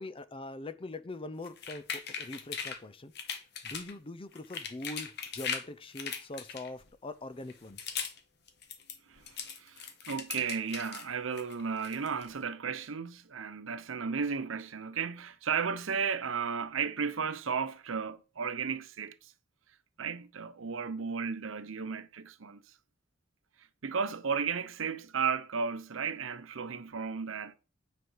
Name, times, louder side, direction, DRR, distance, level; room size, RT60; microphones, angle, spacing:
voice 1, 0.0-3.1 3.6-7.9, left 2 dB, 25° left, 0.5 m, -43 dB
sound 1, 1.4-2.8 3.1-3.9 4.3-5.7 5.9-6.9 7.4-8.2 8.5-11.1 11.4-12.3, left 7 dB, 60° left, 1.2 m, -39 dB
voice 2, 9.1-19.3 20.0-22.6 23.8-27.5, right 6 dB, 85° right, 0.7 m, -34 dB
9.3 x 5.1 x 4.6 m
head